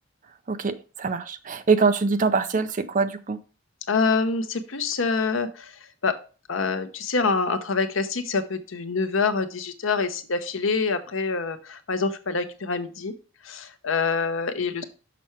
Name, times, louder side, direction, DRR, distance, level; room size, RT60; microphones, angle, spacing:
voice 1, 0.5-3.4, right 4 dB, 40° right, 11 dB, 0.6 m, -24 dB
voice 2, 3.9-5.7 6.0-6.1 6.5-13.1 13.4-14.8, left 4 dB, 85° left, 10 dB, 0.8 m, -26 dB
6.1 x 5.7 x 4.4 m, 0.35 s
head